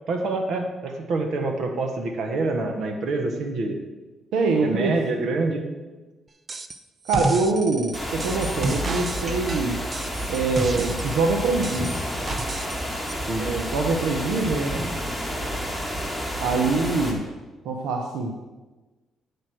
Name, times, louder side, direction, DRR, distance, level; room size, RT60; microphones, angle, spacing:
voice 1, 0.1-3.8 4.6-5.7 13.3-13.5, right 3 dB, 70° right, 4 dB, 1.3 m, -26 dB
voice 2, 4.3-5.0 7.1-9.8 10.3-12.0 13.3-14.8 16.4-17.2 17.6-18.4, right 3 dB, 85° right, 2 dB, 0.9 m, -24 dB
sound 1, 6.5-6.8 7.1-11.2 11.6-12.8 13.1-13.2, right 3 dB, 35° right, 0.6 m, -31 dB
sound 2, 7.9-17.1, equal, 10° right, 2.0 m, -30 dB
8.8 x 5.1 x 6.2 m, 1.2 s
cardioid pair, 90°, 0 cm